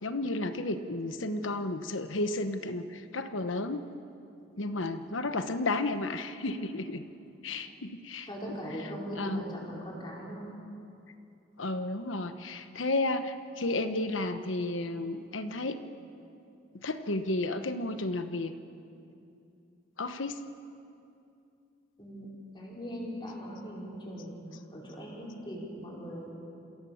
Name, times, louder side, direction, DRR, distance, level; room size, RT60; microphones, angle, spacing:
voice 1, 0.0-3.9 4.6-7.1 7.4-8.6 9.2-9.4 11.6-15.8 16.8-18.5 20.0-20.4, left 2 dB, 85° left, 9 dB, 1.2 m, -32 dB
voice 2, 8.3-10.5 22.0-22.3 22.5-26.3, equal, 25° left, -4 dB, 5.2 m, -40 dB
27.0 x 16.5 x 7.2 m, 2.6 s
head